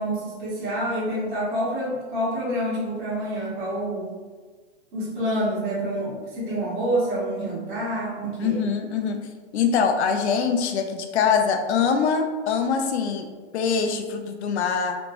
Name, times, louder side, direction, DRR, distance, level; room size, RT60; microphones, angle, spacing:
voice 1, 0.0-4.1 4.9-8.6, right 1 dB, 45° right, -8 dB, 1.3 m, -27 dB
voice 2, 8.4-9.2 9.5-13.3 13.5-15.0, left 6 dB, 75° left, 5 dB, 0.6 m, -23 dB
3.3 x 3.0 x 2.5 m, 1.4 s
supercardioid pair, 175°, 33 cm